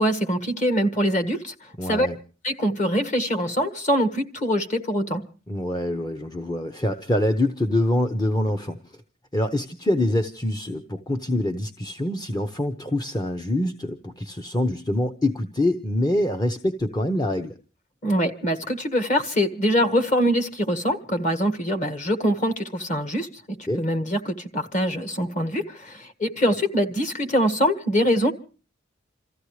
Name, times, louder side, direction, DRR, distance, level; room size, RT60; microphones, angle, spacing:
voice 1, 0.0-1.5 1.8-2.1 2.4-5.3 18.0-28.3, equal, 35° left, 6 dB, 1.9 m, -24 dB
voice 2, 1.8-2.2 5.5-9.0 9.3-17.5 23.7-23.8, left 1 dB, 20° left, 6 dB, 0.8 m, -25 dB
28.0 x 15.0 x 3.2 m, 0.37 s
head